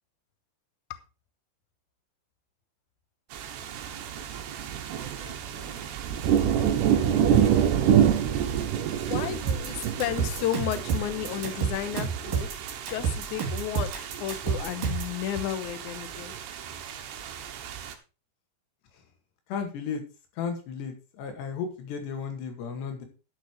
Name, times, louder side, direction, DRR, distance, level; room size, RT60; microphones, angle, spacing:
sound 1, 3.3-17.9, right 9 dB, 75° right, 3.3 m, -28 dB
voice 1, 5.0-5.7 9.0-12.5 12.9-13.9 14.2-16.3, left 11 dB, 90° left, 11 dB, 1.7 m, -33 dB
sound 2, 9.5-15.1, right 6 dB, 55° right, 3.7 m, -30 dB
voice 2, 19.5-20.0 20.4-23.1, left 6 dB, 75° left, 5 dB, 4.1 m, -34 dB
11.5 x 6.7 x 4.6 m, 0.32 s
omnidirectional pair, 5.0 m